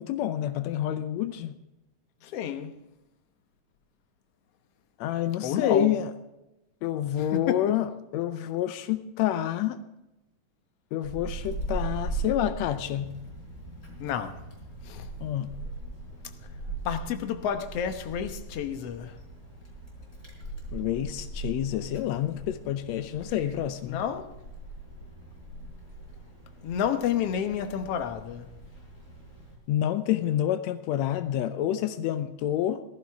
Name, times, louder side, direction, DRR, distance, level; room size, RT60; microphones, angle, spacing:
voice 1, 0.0-1.5 5.0-6.1 6.8-9.8 10.9-13.2 15.2-15.6 20.7-24.0 29.7-32.8, left 11 dB, 85° left, 1.5 m, -28 dB
voice 2, 2.2-2.7 5.4-5.9 7.2-7.6 14.0-14.4 14.9-15.0 16.8-19.1 23.9-24.3 26.6-28.5 32.2-32.3, left 8 dB, 65° left, 1.6 m, -30 dB
Wind, 11.0-29.5, right 3 dB, 20° left, 4.5 m, -40 dB
17.0 x 14.5 x 3.5 m
omnidirectional pair, 3.8 m